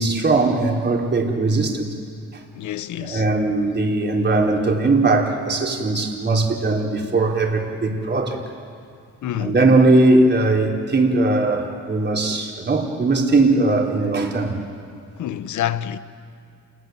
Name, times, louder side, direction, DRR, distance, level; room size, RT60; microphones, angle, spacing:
voice 1, 0.0-1.9 3.0-8.4 9.4-14.6, right 2 dB, 35° right, 4.2 m, -19 dB
voice 2, 2.5-3.2 9.2-9.6 15.2-16.0, left 11 dB, 75° left, 1.1 m, -27 dB
28.5 x 21.0 x 9.5 m
cardioid pair, 90°, 30 cm